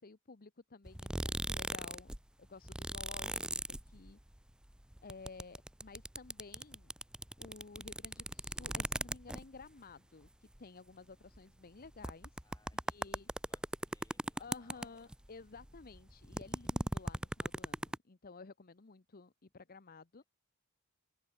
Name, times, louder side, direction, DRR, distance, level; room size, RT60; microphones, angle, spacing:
voice 1, 0.0-4.2 5.0-6.9 7.4-12.4 12.9-13.3 14.4-20.2, left 4 dB, 45° left, 0.9 m, -54 dB
sound 1, 0.9-2.2 2.4-4.4 4.6-9.7 10.3-10.4 10.5-10.6 11.3-11.4 11.8-15.3 15.6-18.0, right 1 dB, 5° right, 0.6 m, -38 dB
voice 2, 12.4-15.2, left 2 dB, 15° left, 6.3 m, -71 dB
head